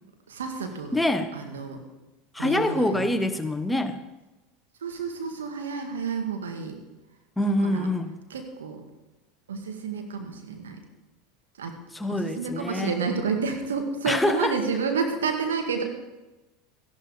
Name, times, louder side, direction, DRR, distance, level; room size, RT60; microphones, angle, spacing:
voice 1, 0.3-1.0 1.4-1.8 2.4-3.1 4.8-6.8 7.6-7.9 8.3-8.8 9.5-10.8 11.6-11.8 12.1-15.8, right 5 dB, 85° right, 4 dB, 2.0 m, -30 dB
voice 2, 0.9-1.3 2.3-4.0 7.4-8.1 11.9-13.0 14.1-14.5, left 1 dB, 5° left, 8 dB, 1.0 m, -25 dB
14.5 x 11.0 x 5.1 m, 1.1 s
hypercardioid pair, 85°, 0 cm